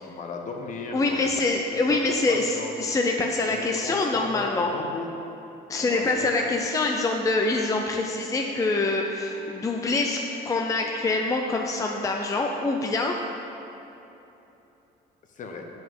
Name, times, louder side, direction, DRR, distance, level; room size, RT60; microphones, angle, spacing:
voice 1, 0.0-1.4 1.7-2.7 3.4-5.1 5.8-6.4 15.4-15.7, left 4 dB, 50° left, 3 dB, 1.0 m, -36 dB
voice 2, 0.9-4.7 5.7-10.2 10.4-13.2, left 3 dB, 20° left, 1 dB, 0.5 m, -25 dB
Wind instrument woodwind instrument, 5.6-11.0, right 2 dB, 85° left, 1.0 m, -48 dB
7.8 x 5.4 x 5.5 m, 3.0 s
cardioid pair, 110°, 17 cm